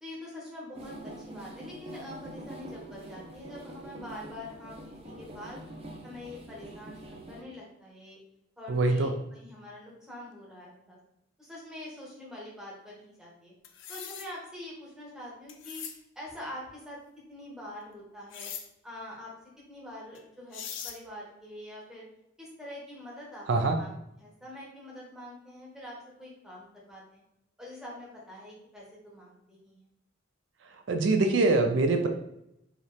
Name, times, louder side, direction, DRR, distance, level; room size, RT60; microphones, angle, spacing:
voice 1, 0.0-5.6 6.0-8.2 8.6-11.0 11.4-13.5 13.9-15.8 16.1-17.0 17.3-18.5 18.8-19.3 19.7-22.1 22.4-27.2 27.6-29.9, left 1 dB, 5° right, -6 dB, 1.6 m, -45 dB
sound 1, 0.7-7.4, right 1 dB, 30° right, 0.7 m, -45 dB
voice 2, 8.7-9.1 23.5-23.8 30.9-32.1, right 3 dB, 75° right, 5 dB, 0.5 m, -24 dB
sound 2, 13.6-14.3 15.5-16.0 18.3-18.6 20.1-20.2 20.5-21.0, left 8 dB, 80° left, 0.6 m, -40 dB
4.8 x 3.0 x 3.4 m, 0.79 s
head